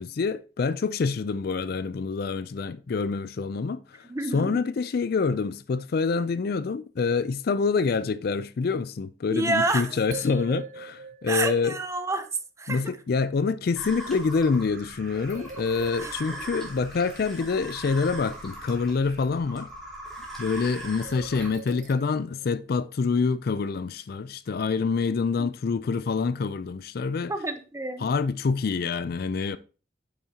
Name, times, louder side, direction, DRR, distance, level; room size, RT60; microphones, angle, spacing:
voice 1, 0.0-4.1 4.3-11.8 12.7-19.7 20.4-27.3 28.0-29.6, left 4 dB, 55° left, 0.4 m, -26 dB
voice 2, 4.1-4.6 9.3-10.0 11.3-12.3 12.6-12.8 16.0-16.1 25.4-25.5 27.3-28.1, right 2 dB, 15° right, 0.7 m, -28 dB
sound 1, 9.7-9.8 10.1-12.1 15.3-17.0 21.0-22.9, right 4 dB, 45° right, 0.4 m, -43 dB
sound 2, 13.7-21.5, right 1 dB, ahead, 2.9 m, -40 dB
8.6 x 7.3 x 2.8 m
head